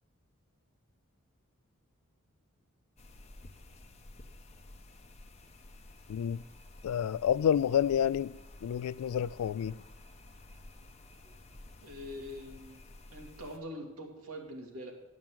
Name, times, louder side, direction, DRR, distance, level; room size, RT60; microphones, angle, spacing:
sound 1, 3.0-13.6, left 2 dB, 30° left, 0.8 m, -52 dB
voice 1, 6.1-6.4 6.8-9.8, left 9 dB, 85° left, 0.3 m, -29 dB
voice 2, 11.8-12.8 13.1-14.9, equal, 85° right, 2.2 m, -44 dB
11.0 x 5.9 x 7.5 m
head